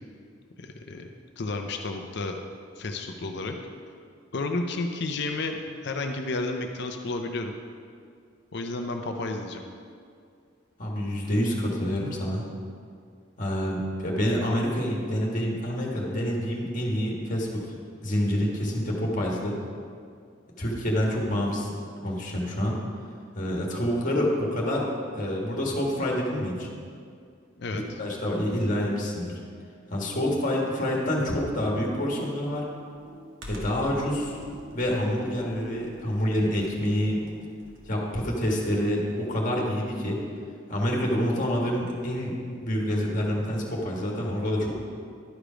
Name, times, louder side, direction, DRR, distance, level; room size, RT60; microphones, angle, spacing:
voice 1, 0.6-1.1 1.4-2.4 2.8-3.5 4.3-7.5 8.5-9.6 27.6-27.8, left 2 dB, 60° left, 4 dB, 0.6 m, -31 dB
voice 2, 10.8-12.5 13.4-17.6 18.0-19.5 20.6-21.7 22.0-22.8 23.3-26.7 28.0-29.3 29.9-32.6 33.5-37.3 37.9-40.2 40.7-42.3 42.6-44.7, equal, 40° left, -2 dB, 1.6 m, -27 dB
Computer keyboard, 31.2-38.0, equal, 80° right, 1.5 m, -44 dB
11.5 x 5.0 x 5.0 m, 2.3 s
head